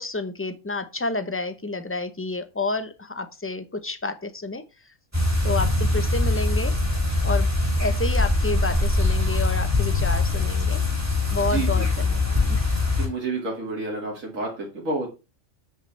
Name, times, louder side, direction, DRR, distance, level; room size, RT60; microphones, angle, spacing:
voice 1, 0.0-4.6 5.4-6.7 7.2-7.5 7.8-10.8 11.3-12.7, left 3 dB, 15° left, 10 dB, 0.6 m, -30 dB
sound 1, 5.1-13.1, left 2 dB, 10° right, 2.9 m, -22 dB
voice 2, 11.5-11.9 13.0-15.1, right 3 dB, 80° right, -1 dB, 2.5 m, -29 dB
8.2 x 6.9 x 3.3 m, 0.29 s
omnidirectional pair, 1.4 m